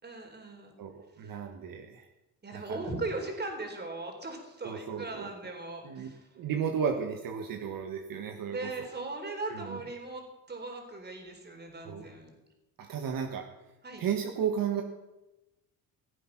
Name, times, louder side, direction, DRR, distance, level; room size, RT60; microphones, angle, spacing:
voice 1, 0.0-0.8 1.2-1.4 2.4-6.3 8.5-12.3 13.8-14.0, right 2 dB, 25° right, 3 dB, 3.7 m, -39 dB
voice 2, 0.8-2.1 2.5-2.9 4.6-5.3 5.8-8.9 9.5-9.8 11.8-12.1 12.8-13.4 14.0-14.8, right 7 dB, 60° right, 4 dB, 1.5 m, -34 dB
16.5 x 8.4 x 5.9 m, 1.0 s
cardioid pair, 100°, 38 cm